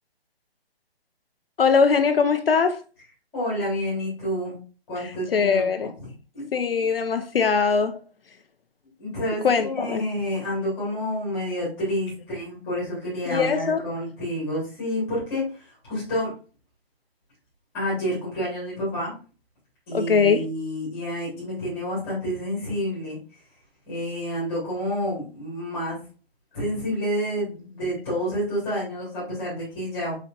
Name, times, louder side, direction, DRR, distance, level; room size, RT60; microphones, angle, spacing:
voice 1, 1.6-2.8 5.0-5.9 6.5-8.0 9.4-10.0 13.3-13.8 19.9-20.5, left 5 dB, 65° left, 0.5 m, -21 dB
voice 2, 3.3-4.6 4.9-5.9 6.3-6.4 9.0-16.3 17.7-19.1 19.9-23.2 23.9-26.0 26.5-30.2, equal, 5° left, 1.5 m, -29 dB
4.4 x 4.1 x 2.5 m
hypercardioid pair, 175°, 31 cm